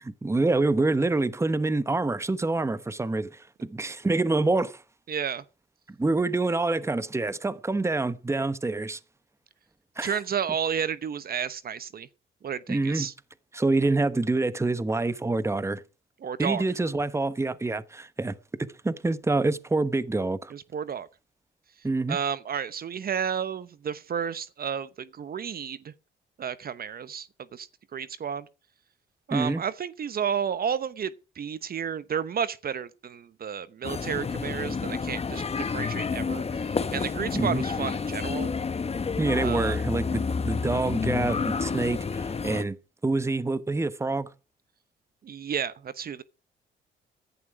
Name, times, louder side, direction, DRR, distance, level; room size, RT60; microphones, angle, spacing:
voice 1, 0.2-4.8 5.9-9.0 10.0-10.2 12.7-13.1 13.5-15.8 16.4-18.3 18.8-20.5 21.8-22.2 29.3-29.6 37.4-37.6 39.2-42.8 43.0-44.3, right 2 dB, 15° right, 1.1 m, -26 dB
voice 2, 5.1-5.4 10.0-12.1 12.4-13.1 16.2-16.6 20.5-21.1 22.1-25.9 26.4-28.5 29.3-38.5 39.4-39.8 45.2-46.2, right 7 dB, 50° right, 0.9 m, -32 dB
sound 1, 33.8-42.6, left 5 dB, 30° left, 1.3 m, -29 dB
15.5 x 11.0 x 4.8 m
cardioid pair, 90°, 20 cm